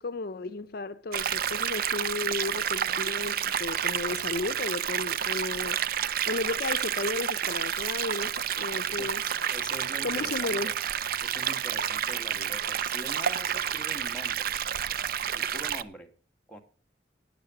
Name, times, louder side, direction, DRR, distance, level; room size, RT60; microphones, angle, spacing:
voice 1, 0.0-5.8 6.3-9.2 10.0-10.7, left 3 dB, 60° left, 0.6 m, -34 dB
sound 1, 1.1-15.8, right 9 dB, 55° right, 0.5 m, -30 dB
sound 2, 4.8-12.1, right 1 dB, 25° right, 4.6 m, -56 dB
voice 2, 8.7-10.8 11.2-14.6 15.3-16.1 16.5-16.6, equal, 5° left, 1.8 m, -44 dB
12.0 x 9.5 x 6.0 m
head